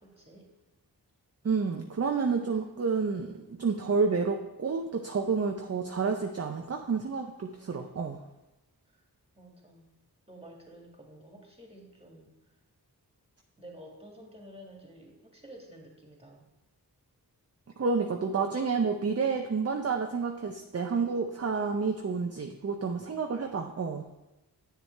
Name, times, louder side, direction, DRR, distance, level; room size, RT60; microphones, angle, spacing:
voice 1, 0.0-0.5 7.6-7.7 9.3-9.9 10.3-12.3 13.6-16.5, right 1 dB, 15° right, -1 dB, 2.0 m, -51 dB
voice 2, 1.4-8.2 17.8-24.1, right 5 dB, 40° right, 4 dB, 0.6 m, -29 dB
8.0 x 7.1 x 3.3 m, 0.98 s
cardioid pair, 40°, 39 cm